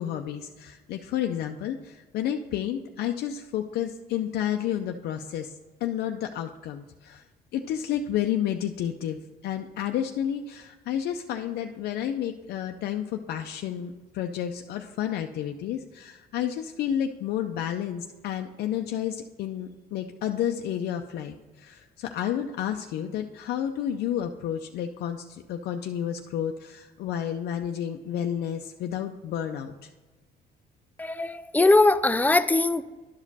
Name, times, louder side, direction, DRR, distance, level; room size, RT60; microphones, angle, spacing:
voice 1, 0.0-5.5 5.8-7.2 7.5-29.9, left 10 dB, 70° left, 4 dB, 0.5 m, -31 dB
voice 2, 31.0-32.8, left 2 dB, 10° left, 13 dB, 0.3 m, -21 dB
11.0 x 5.1 x 4.1 m, 1.2 s
cardioid pair, 110°, 17 cm